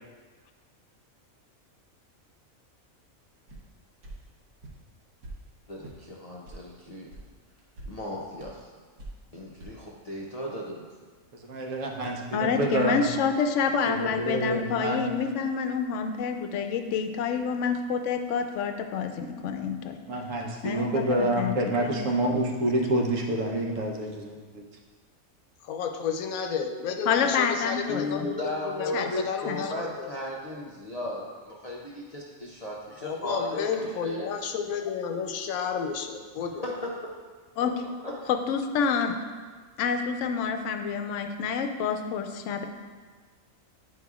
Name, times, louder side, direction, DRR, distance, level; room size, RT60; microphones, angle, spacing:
sound 1, 3.5-3.7 4.0-4.2 4.6-4.8 5.2-5.4 5.8-6.0 6.5-6.6 7.1-7.3 7.6-7.9 8.4-8.5 9.0-9.2 9.6-9.7, right 2 dB, 90° right, 1.4 m, -42 dB
voice 1, 5.7-7.1 7.9-8.7 9.3-10.9 27.9-34.4 36.6-36.9 37.6-37.7 38.0-38.1, left 1 dB, 45° left, -5 dB, 0.5 m, -35 dB
voice 2, 11.5-13.0 13.9-15.0 20.1-24.6, right 1 dB, 70° right, 0 dB, 1.2 m, -28 dB
voice 3, 12.3-20.0 20.6-21.9 27.1-28.3 28.9-29.1 29.5-29.6 37.6-37.7 38.3-39.2 39.8-42.7, left 6 dB, 70° left, 6 dB, 0.8 m, -28 dB
voice 4, 25.6-30.1 33.0-36.6, left 6 dB, 90° left, 5 dB, 1.1 m, -32 dB
9.1 x 4.8 x 2.4 m, 1.4 s
omnidirectional pair, 1.4 m